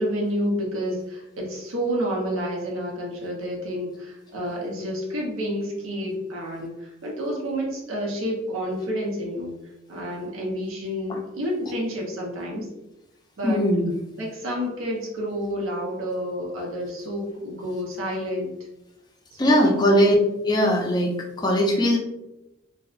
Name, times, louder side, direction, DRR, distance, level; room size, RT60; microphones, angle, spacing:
voice 1, 0.0-9.6 9.9-12.7 13.4-13.6 14.2-18.6 19.3-19.8, equal, 85° right, -1 dB, 0.6 m, -29 dB
voice 2, 13.4-14.0 19.4-20.2 20.5-22.0, equal, 20° left, -1 dB, 0.4 m, -20 dB
2.6 x 2.0 x 2.4 m, 0.91 s
head